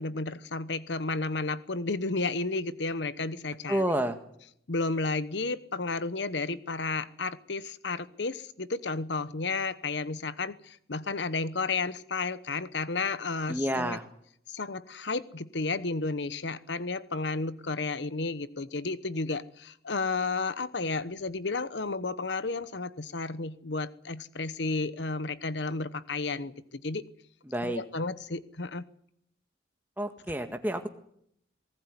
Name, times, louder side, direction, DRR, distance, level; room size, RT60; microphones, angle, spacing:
voice 1, 0.0-4.0 4.7-14.0 14.5-27.0 27.6-28.8, left 3 dB, 75° left, 15 dB, 1.0 m, -32 dB
voice 2, 3.7-4.2 13.5-14.0 27.5-27.8 30.0-30.9, right 1 dB, 10° right, 6 dB, 1.8 m, -29 dB
19.5 x 18.5 x 9.8 m, 0.72 s
head